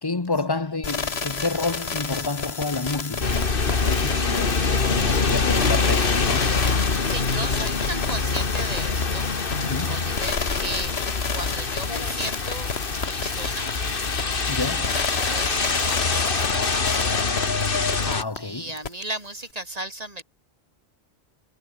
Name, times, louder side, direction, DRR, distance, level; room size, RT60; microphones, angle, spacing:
voice 1, 0.0-6.5 9.6-10.0 14.5-14.9 18.0-18.7, left 3 dB, 25° left, 1.1 m, -29 dB
sound 1, 0.8-18.4 18.8-18.9, left 5 dB, 90° left, 1.9 m, -32 dB
sound 2, 3.2-18.2, left 4 dB, 60° left, 1.9 m, -24 dB
voice 2, 6.6-9.3 9.9-10.9 11.3-12.7 13.1-13.7 15.2-17.1 18.3-20.2, right 1 dB, 40° right, 3.3 m, -35 dB
omnidirectional pair, 1.0 m